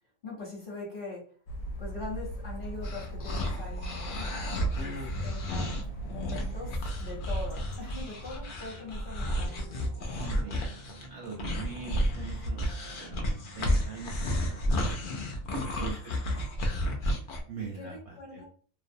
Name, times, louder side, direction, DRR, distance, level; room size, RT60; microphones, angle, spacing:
voice 1, 0.2-1.4 1.8-4.6 4.8-5.7 6.1-6.7 7.0-9.7 15.7-15.9 16.2-16.8 17.1-17.3 17.6-18.4, left 3 dB, 45° left, -4 dB, 0.9 m, -42 dB
sound 1, 1.5-8.0, right 1 dB, 70° left, 0.9 m, -38 dB
sound 2, 2.5-15.3, right 4 dB, 90° right, 1.1 m, -51 dB
sound 3, 2.8-17.4, equal, 90° left, 0.4 m, -32 dB
voice 2, 4.7-5.2 10.2-14.9 15.5-16.2 16.8-16.9 17.5-18.4, right 4 dB, 65° right, -1 dB, 0.7 m, -42 dB
2.5 x 2.0 x 2.6 m, 0.43 s
omnidirectional pair, 1.5 m